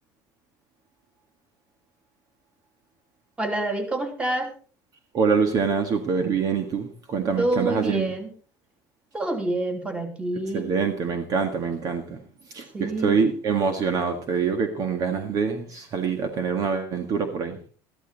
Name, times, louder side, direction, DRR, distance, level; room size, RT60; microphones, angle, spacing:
voice 1, 3.4-4.5 7.4-8.3 9.1-10.7 12.7-13.2, right 2 dB, 15° right, 5 dB, 3.0 m, -27 dB
voice 2, 5.1-8.1 10.5-12.2 12.5-17.6, right 5 dB, 45° right, 7 dB, 1.8 m, -25 dB
14.0 x 12.0 x 4.1 m, 0.39 s
cardioid pair, 120°, 8 cm